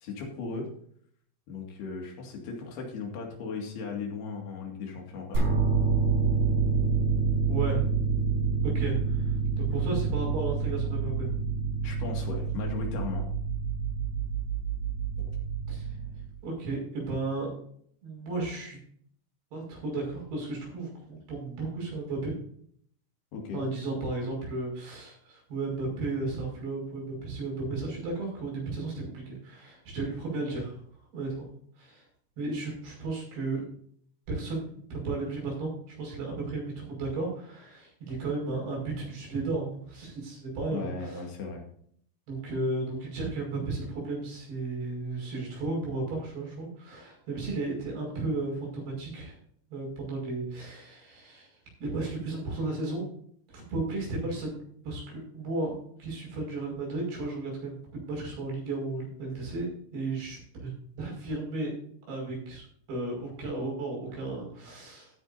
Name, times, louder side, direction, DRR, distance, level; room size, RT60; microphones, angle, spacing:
voice 1, 0.0-0.7 1.5-5.4 11.8-13.3 23.3-23.6 40.7-41.7, left 4 dB, 80° left, 1 dB, 4.2 m, -37 dB
sound 1, 5.3-16.3, right 5 dB, 60° right, 7.3 m, -28 dB
voice 2, 7.5-7.9 8.6-11.3 15.7-15.9 16.4-17.5 18.0-18.8 19.5-22.3 23.5-30.8 31.1-31.4 31.8-32.0 32.4-33.6 34.3-41.2 42.3-49.4 49.7-51.5 51.8-53.0 53.5-54.6 54.8-60.7 61.0-61.8 62.1-65.1, right 3 dB, 85° right, -2 dB, 7.8 m, -34 dB
15.0 x 10.0 x 2.7 m, 0.62 s
omnidirectional pair, 4.5 m